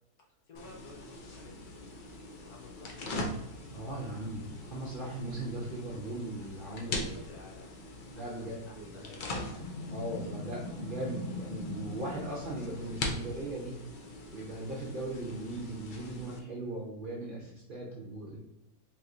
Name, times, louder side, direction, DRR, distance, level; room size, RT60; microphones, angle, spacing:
voice 1, 0.2-1.7 2.2-3.3 6.7-7.7 8.1-9.7, left 2 dB, 70° left, -1 dB, 1.4 m, -53 dB
open and close fridge then freezer, 0.5-16.4, left 2 dB, 90° left, 0.4 m, -41 dB
voice 2, 3.7-7.0 8.1-9.0 9.9-13.8 14.3-18.4, right 1 dB, 45° right, -4 dB, 0.7 m, -39 dB
4.5 x 3.5 x 2.5 m, 0.86 s
omnidirectional pair, 1.7 m